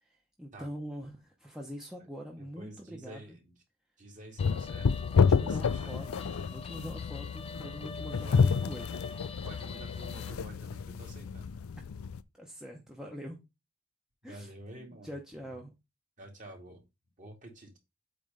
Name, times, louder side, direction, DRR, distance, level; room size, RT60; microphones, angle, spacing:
voice 1, 0.0-3.4 5.0-8.9 12.4-13.4 14.2-15.7, equal, 5° right, 0.9 m, -44 dB
voice 2, 2.4-3.5 4.0-4.9 5.2-6.0 8.3-8.7 9.2-11.6 14.2-15.6 16.2-16.8 17.2-17.8, right 1 dB, 35° right, 2.4 m, -49 dB
sound 1, 4.4-12.2, left 5 dB, 75° left, 0.4 m, -30 dB
Guitar, 4.4-10.3, left 4 dB, 25° left, 0.6 m, -46 dB
8.3 x 3.2 x 5.3 m
head